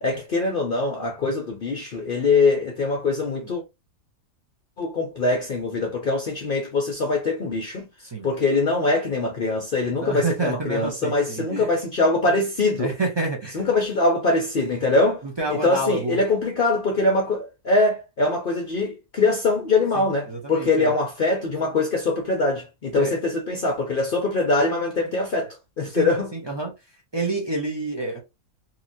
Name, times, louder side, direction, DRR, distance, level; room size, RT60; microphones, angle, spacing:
voice 1, 0.0-3.6 4.8-7.9 8.2-12.9 13.5-15.2 15.5-26.3, left 3 dB, 65° left, 0.5 m, -23 dB
voice 2, 10.0-11.7 12.8-13.6 15.2-16.2 19.9-20.9 22.9-23.1 25.8-26.7 27.1-28.2, right 3 dB, 40° right, 0.3 m, -28 dB
2.9 x 2.8 x 2.6 m
omnidirectional pair, 1.7 m